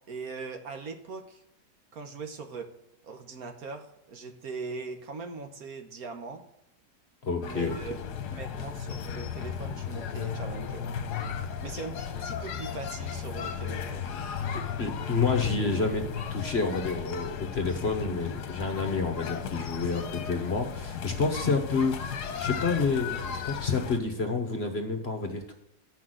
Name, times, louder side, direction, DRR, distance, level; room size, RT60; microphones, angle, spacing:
voice 1, 0.1-1.4 1.9-2.7 3.0-6.4 7.4-8.0 8.3-10.9 11.6-14.1, right 4 dB, 60° right, 5 dB, 1.4 m, -40 dB
voice 2, 7.2-7.8 14.5-22.0 22.4-25.5, left 4 dB, 40° left, 5 dB, 1.2 m, -29 dB
sound 1, 7.4-24.0, left 7 dB, 70° left, 1.4 m, -35 dB
12.5 x 6.0 x 7.8 m, 0.88 s
omnidirectional pair, 1.9 m